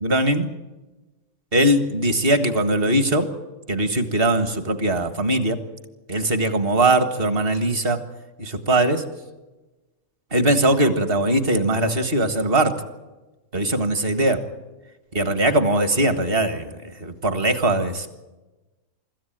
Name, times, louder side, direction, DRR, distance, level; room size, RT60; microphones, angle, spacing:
voice 1, 0.0-0.5 1.5-3.3 3.7-5.6 6.1-8.0 8.4-9.0 10.3-12.8 13.5-14.4 15.1-18.1, right 1 dB, 40° right, 9 dB, 1.9 m, -21 dB
25.0 x 14.0 x 9.1 m, 1.1 s
omnidirectional pair, 1.5 m